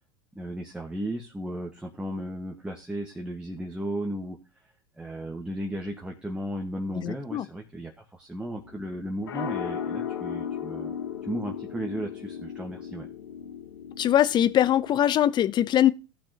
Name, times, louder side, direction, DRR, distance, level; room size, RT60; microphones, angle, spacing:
voice 1, 0.3-4.4 5.0-10.9 11.2-13.1, right 1 dB, 10° right, 1.5 m, -35 dB
voice 2, 7.0-7.5 14.0-15.9, left 11 dB, 40° left, 0.7 m, -22 dB
sound 1, 8.6-14.9, left 8 dB, 90° left, 1.1 m, -36 dB
16.0 x 6.0 x 2.9 m
hypercardioid pair, 90°, 12 cm